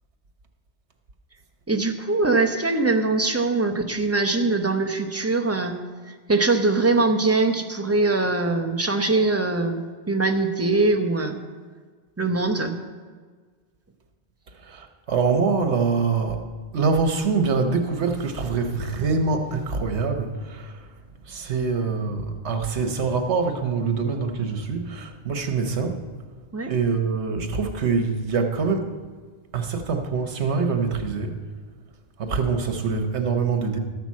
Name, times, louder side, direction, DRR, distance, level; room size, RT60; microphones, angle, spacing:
voice 1, 1.7-5.8 6.1-11.4 12.2-12.7 26.5-26.7, right 3 dB, 15° right, 5 dB, 0.7 m, -22 dB
voice 2, 14.6-16.4 16.7-20.8 21.3-26.0 26.7-28.9 29.5-31.4 32.2-33.8, right 4 dB, 75° right, 5 dB, 1.3 m, -24 dB
13.0 x 6.0 x 7.3 m, 1.5 s
omnidirectional pair, 1.2 m